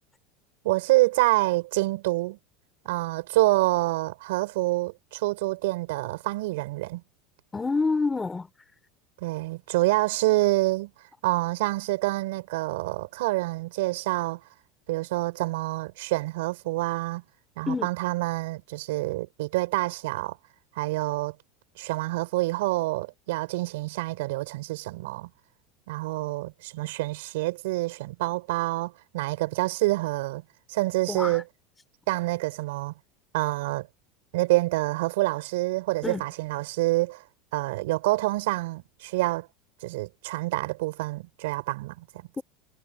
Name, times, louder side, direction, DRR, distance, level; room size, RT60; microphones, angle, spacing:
voice 1, 0.6-2.4 2.8-7.0 9.2-10.9 11.2-14.4 14.9-17.2 17.6-20.4 20.8-21.3 21.8-25.3 25.9-30.4 30.7-31.4 32.1-32.9 33.3-33.9 34.3-37.2 37.5-39.5 39.8-42.3, right 20 dB, 80° right, 5.8 m, -27 dB
voice 2, 7.5-8.5 17.7-17.9 31.1-31.4 36.0-36.2 42.4-42.5, left 4 dB, 10° left, 3.5 m, -27 dB
supercardioid pair, 165°, 0 cm